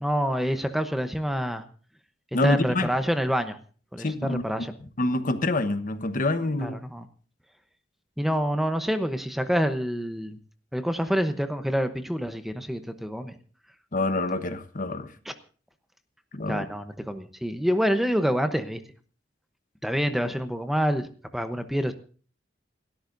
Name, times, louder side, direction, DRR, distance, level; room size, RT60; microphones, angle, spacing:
voice 1, 0.0-1.6 2.4-3.6 3.9-4.7 6.6-7.0 8.2-10.4 10.7-13.3 15.3-15.4 16.5-18.8 19.8-21.1 21.3-21.9, equal, ahead, 8 dB, 0.9 m, -27 dB
voice 2, 2.3-2.9 4.0-4.4 5.0-6.8 13.9-15.1 16.3-16.6, left 2 dB, 45° left, 10 dB, 1.1 m, -26 dB
29.0 x 13.0 x 2.6 m, 0.41 s
head